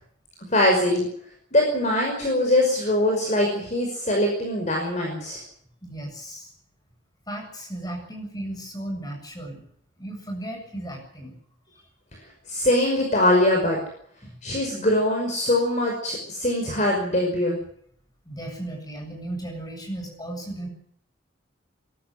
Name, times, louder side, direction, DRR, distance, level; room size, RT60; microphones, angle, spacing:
voice 1, 0.5-1.1 1.5-5.4 12.5-13.8 14.4-17.6, left 1 dB, 35° left, 0 dB, 5.5 m, -22 dB
voice 2, 5.8-6.5 7.3-9.6 10.0-11.3 11.7-11.8 14.2-14.3 18.2-20.7, right 1 dB, 20° left, 2 dB, 7.6 m, -35 dB
23.0 x 13.5 x 9.9 m, 0.66 s
head